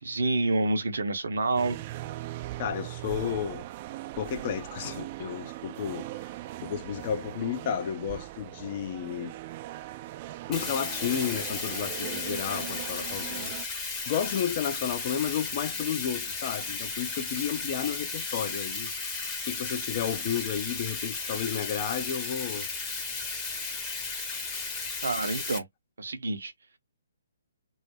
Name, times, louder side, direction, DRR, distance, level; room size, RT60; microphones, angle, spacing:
voice 1, 0.0-1.8 25.0-25.7 26.0-26.5, right 2 dB, 65° right, 0.6 m, -28 dB
sound 1, 1.6-13.7, right 16 dB, 35° right, 0.3 m, -40 dB
voice 2, 2.6-3.7 4.2-6.3 6.6-9.4 10.5-22.7, left 8 dB, 35° left, 0.4 m, -32 dB
Bathtub (filling or washing), 10.5-25.6, left 4 dB, 10° left, 0.8 m, -34 dB
2.3 x 2.0 x 3.1 m
figure-of-eight pair, 130°, 0 cm